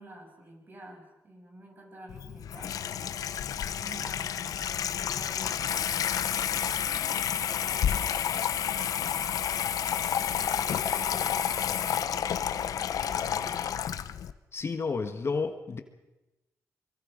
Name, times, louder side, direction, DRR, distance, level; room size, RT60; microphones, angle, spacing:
voice 1, 0.0-3.2 3.6-7.1 7.4-9.8 10.2-13.7, right 1 dB, 35° right, 1 dB, 6.7 m, -50 dB
Water tap faucet / Sink (filling or washing), 2.1-14.3, left 9 dB, 80° left, 0.9 m, -30 dB
voice 2, 14.5-15.8, left 4 dB, 45° left, 8 dB, 1.6 m, -31 dB
24.5 x 23.0 x 5.2 m, 1.0 s
cardioid pair, 85°, 6 cm